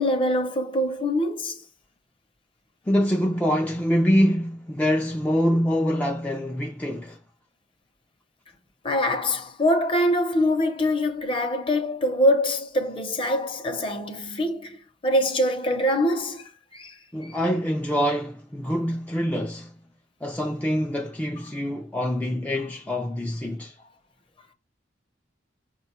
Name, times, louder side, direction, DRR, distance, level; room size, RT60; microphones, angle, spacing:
voice 1, 0.0-1.6 8.8-16.9 17.2-17.3, left 1 dB, 30° left, 0.7 m, -24 dB
voice 2, 2.9-7.2 17.1-19.7 20.2-23.8, equal, 10° left, 0.3 m, -25 dB
5.2 x 2.3 x 4.2 m
head